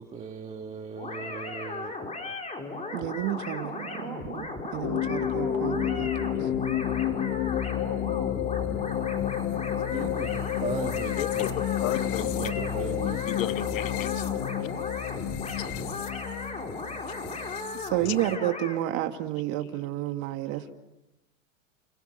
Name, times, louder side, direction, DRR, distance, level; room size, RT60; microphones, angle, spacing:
voice 1, 0.0-2.0 9.9-11.6 12.2-13.2, right 5 dB, 15° right, 4 dB, 1.8 m, -38 dB
sound 1, 1.0-18.8, left 2 dB, 20° left, 5.4 m, -36 dB
voice 2, 2.9-6.5 17.7-20.7, right 13 dB, 50° right, 6 dB, 2.3 m, -31 dB
sound 2, 4.8-18.4, left 11 dB, 55° left, 2.2 m, -30 dB
voice 3, 11.2-12.3 13.3-14.2 18.0-18.2, left 13 dB, 85° left, 13 dB, 1.4 m, -34 dB
29.5 x 28.5 x 6.8 m, 1.0 s
hypercardioid pair, 120°, 38 cm